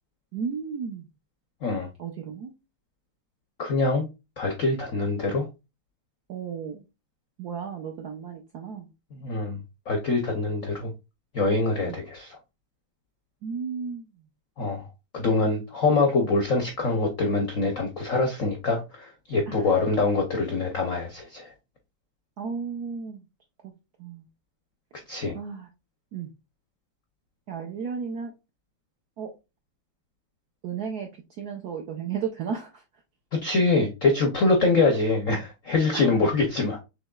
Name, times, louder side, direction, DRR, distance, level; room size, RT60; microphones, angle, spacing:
voice 1, 0.3-1.1 2.0-2.5 6.3-6.8 7.4-8.9 11.8-12.0 13.4-14.1 19.5-19.8 22.4-23.2 23.6-23.7 24.0-24.2 25.3-25.7 26.1-26.3 27.5-28.3 29.2-29.3 30.6-31.1 31.4-32.8 35.9-36.2, right 6 dB, 70° right, 0.9 m, -34 dB
voice 2, 3.6-4.1 4.4-5.5 9.2-9.6 9.9-10.9 11.3-12.4 14.6-14.9 15.1-21.5 25.1-25.4 33.3-36.8, left 3 dB, 70° left, 0.7 m, -24 dB
6.1 x 3.2 x 2.3 m
omnidirectional pair, 2.4 m